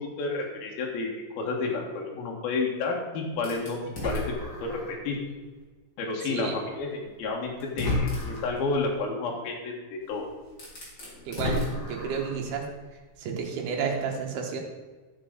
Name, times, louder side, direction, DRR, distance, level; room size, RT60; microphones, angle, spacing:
voice 1, 0.2-1.1 1.4-5.2 6.0-10.3, left 3 dB, 70° left, -1 dB, 3.5 m, -31 dB
sound 1, 3.4-5.1 5.6-5.7 6.9-7.0 7.6-8.6 10.0-10.1 10.5-12.5, left 2 dB, 25° left, 3.3 m, -32 dB
voice 2, 11.3-12.7 13.2-14.6, right 6 dB, 75° right, 1 dB, 3.6 m, -31 dB
13.5 x 7.1 x 5.3 m, 1.3 s
omnidirectional pair, 4.6 m